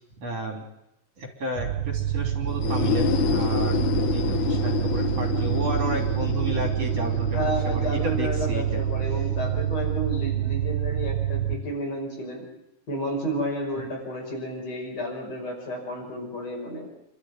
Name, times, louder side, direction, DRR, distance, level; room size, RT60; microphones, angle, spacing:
voice 1, 0.2-0.6 1.2-3.8 4.1-8.8 13.8-13.9, right 1 dB, 55° right, 2 dB, 4.4 m, -32 dB
sound 1, 1.6-11.5, right 11 dB, 85° right, 2.6 m, -27 dB
sound 2, 2.5-10.1, left 11 dB, 85° left, 2.9 m, -30 dB
voice 2, 7.3-12.5 12.9-16.9, equal, 55° left, 0 dB, 6.7 m, -31 dB
28.0 x 13.0 x 9.4 m, 0.88 s
omnidirectional pair, 3.4 m